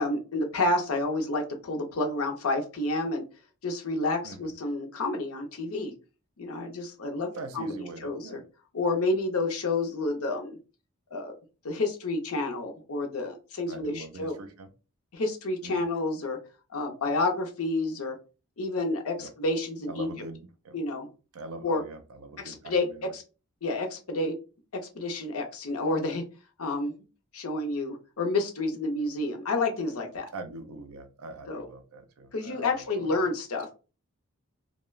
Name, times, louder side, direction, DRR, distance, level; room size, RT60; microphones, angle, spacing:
voice 1, 0.0-3.2 3.6-5.9 6.4-8.4 8.7-10.6 11.1-11.3 11.6-14.3 15.1-16.4 16.7-18.2 18.6-20.1 20.7-21.1 21.6-21.8 22.4-22.8 23.1-23.2 23.6-24.3 24.9-26.2 26.6-26.9 27.3-30.3 31.5-31.7 32.3-33.7, left 2 dB, 85° left, 4 dB, 0.7 m, -29 dB
voice 2, 4.2-4.5 7.3-8.4 13.7-14.7 15.6-15.9 19.2-19.3 19.9-20.8 21.3-23.1 30.3-33.3, right 2 dB, 80° right, 8 dB, 0.5 m, -43 dB
2.3 x 2.1 x 3.1 m, 0.33 s
head